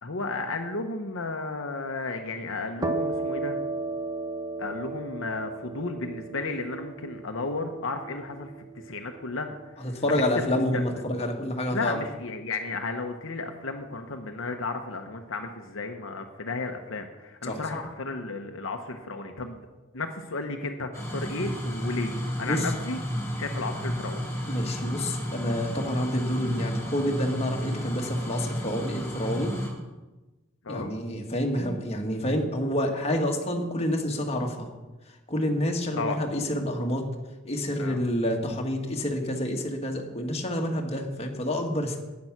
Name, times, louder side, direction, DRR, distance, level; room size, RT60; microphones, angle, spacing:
voice 1, 0.0-3.6 4.6-10.0 10.4-10.8 11.7-19.6 19.9-24.3 30.6-30.9 36.0-36.2 37.8-38.0, left 3 dB, 70° left, 4 dB, 0.9 m, -33 dB
sound 1, 2.8-10.3, right 3 dB, 20° right, 0.9 m, -35 dB
voice 2, 9.8-12.0 17.4-17.6 22.4-22.7 24.5-29.5 30.7-34.7 35.3-37.0 37.4-42.0, left 1 dB, 30° left, 2 dB, 1.6 m, -28 dB
sound 2, 20.9-29.7, equal, 15° left, 3.6 m, -32 dB
11.0 x 9.6 x 5.9 m, 1.1 s
head